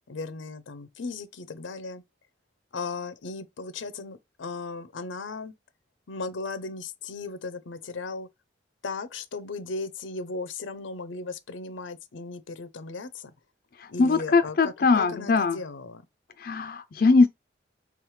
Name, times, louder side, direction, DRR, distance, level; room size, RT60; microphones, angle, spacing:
voice 1, 0.1-2.0 2.7-5.5 6.1-8.3 8.8-13.3 13.9-16.0, left 3 dB, 90° left, 0.6 m, -36 dB
voice 2, 14.0-15.6 16.4-17.3, left 4 dB, 50° left, 0.4 m, -21 dB
3.4 x 3.2 x 4.7 m
head